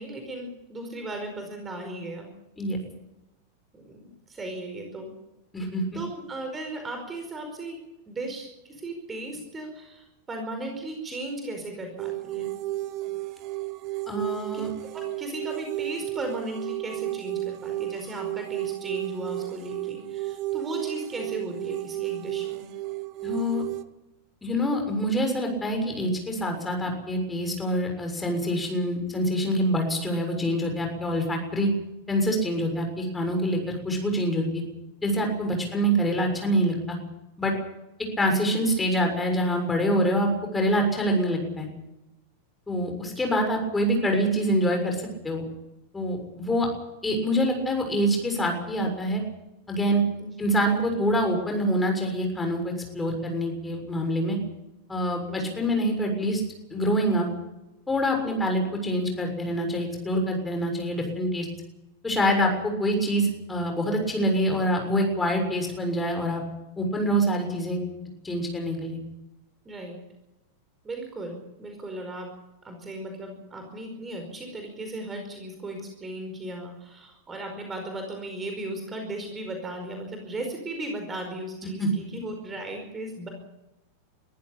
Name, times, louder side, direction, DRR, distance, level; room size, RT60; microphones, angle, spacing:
voice 1, 0.0-2.3 3.7-5.1 5.9-12.5 14.9-22.7 43.1-43.2 50.2-50.3 55.3-55.5 69.6-70.0 70.8-72.3 72.6-83.3, right 1 dB, 15° right, 4 dB, 5.0 m, -36 dB
voice 2, 5.5-5.8 14.1-14.7 23.2-23.6 24.4-31.7 32.1-34.6 35.0-37.0 37.4-37.5 38.2-41.7 42.7-45.5 45.9-46.7 47.0-49.2 49.7-50.0 50.4-54.4 54.9-56.4 56.7-57.3 57.9-61.5 62.0-66.4 66.8-67.8 68.2-69.0 81.8-81.9, equal, 10° left, 3 dB, 6.8 m, -25 dB
sound 1, 12.0-23.8, right 18 dB, 40° right, 1.1 m, -33 dB
23.5 x 15.0 x 8.5 m, 0.95 s
figure-of-eight pair, 90°, 0 cm